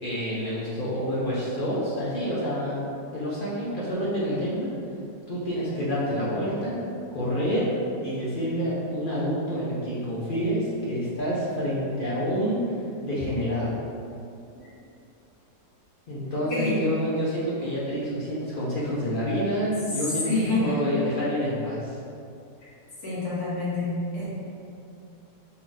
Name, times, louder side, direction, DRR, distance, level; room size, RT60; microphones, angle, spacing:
voice 1, 0.0-2.8 3.1-4.7 5.3-6.8 7.1-7.7 8.0-12.6 13.0-13.8 16.1-20.3 20.6-22.0, equal, 50° left, -8 dB, 0.6 m, -28 dB
voice 2, 16.5-16.9 20.2-20.8 23.0-24.3, left 2 dB, 75° left, -10 dB, 1.9 m, -27 dB
4.2 x 2.4 x 3.9 m, 2.6 s
omnidirectional pair, 1.7 m